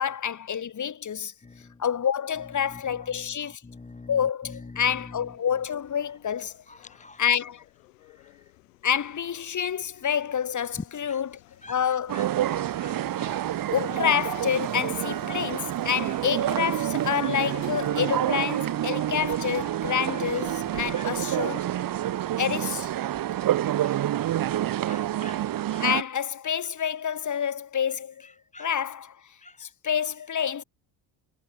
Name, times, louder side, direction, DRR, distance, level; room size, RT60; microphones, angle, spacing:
voice 1, 0.0-1.3 1.8-3.6 4.1-6.6 7.2-7.6 8.8-11.4 11.7-12.3 13.7-21.8 22.4-22.9 25.8-28.1 28.6-29.2 29.6-30.6, left 8 dB, 40° left, 3.3 m, -28 dB
voice 2, 3.6-4.1 6.7-7.2 11.1-11.2 11.6-11.8 12.1-13.4 20.3-20.4 20.9-21.1 21.8-22.2 23.6-25.4 25.7-25.8 28.5-28.7 29.4-29.7, left 2 dB, 15° left, 1.6 m, -48 dB
sound 1, 4.8-23.7, left 21 dB, 90° left, 6.2 m, -54 dB
sound 2, 12.1-26.0, right 12 dB, 45° right, 1.3 m, -28 dB
supercardioid pair, 85°, 47 cm